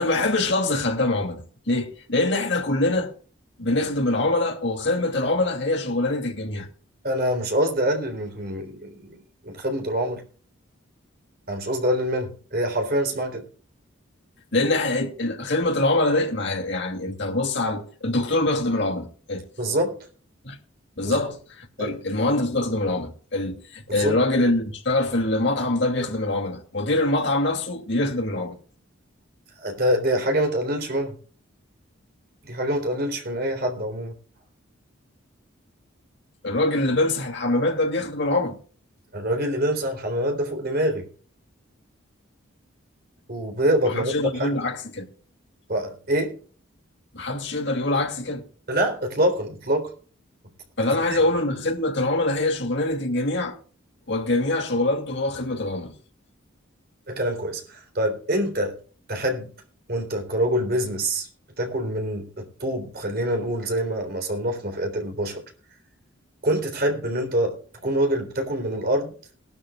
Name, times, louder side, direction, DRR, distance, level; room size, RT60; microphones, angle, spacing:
voice 1, 0.0-3.1 3.6-6.7 14.5-19.5 20.4-20.6 21.0-28.6 36.4-38.6 43.8-45.1 47.1-48.5 50.8-53.6 54.1-55.9, left 2 dB, 60° left, 2.6 m, -24 dB
voice 2, 7.0-10.2 11.5-13.5 19.6-20.0 21.0-21.2 21.8-21.9 23.9-24.2 29.6-31.2 32.4-34.1 39.1-41.1 43.3-44.6 45.7-46.4 48.7-49.9 51.1-51.2 57.1-58.8 59.1-59.5 59.9-61.3 61.6-65.4 66.4-67.6 67.8-69.1, right 1 dB, 45° right, 3.7 m, -25 dB
20.0 x 12.5 x 2.4 m
head